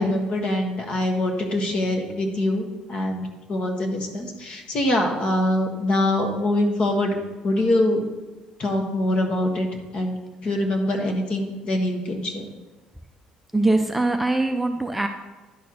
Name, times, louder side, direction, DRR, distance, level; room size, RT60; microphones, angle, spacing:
voice 1, 0.0-7.2 7.4-8.0 8.6-9.7 9.9-10.2 10.4-12.5, left 1 dB, 45° left, 3 dB, 1.4 m, -24 dB
voice 2, 13.5-15.1, right 2 dB, 5° right, 4 dB, 0.4 m, -22 dB
10.0 x 4.3 x 6.3 m, 1.2 s
cardioid pair, 130°, 3 cm